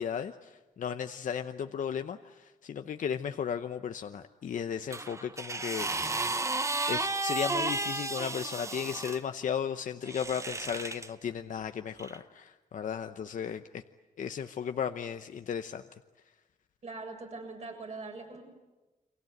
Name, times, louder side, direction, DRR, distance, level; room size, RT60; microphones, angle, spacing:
voice 1, 0.0-6.3 6.9-13.8 14.2-15.8, left 8 dB, 70° left, 8 dB, 0.9 m, -35 dB
sound 1, 4.9-9.2 10.1-11.1 12.0-12.2, right 2 dB, 20° right, 0.9 m, -33 dB
voice 2, 16.8-18.4, right 3 dB, 55° right, 2 dB, 7.4 m, -42 dB
29.5 x 23.5 x 8.0 m, 1.1 s
cardioid pair, 95°, 14 cm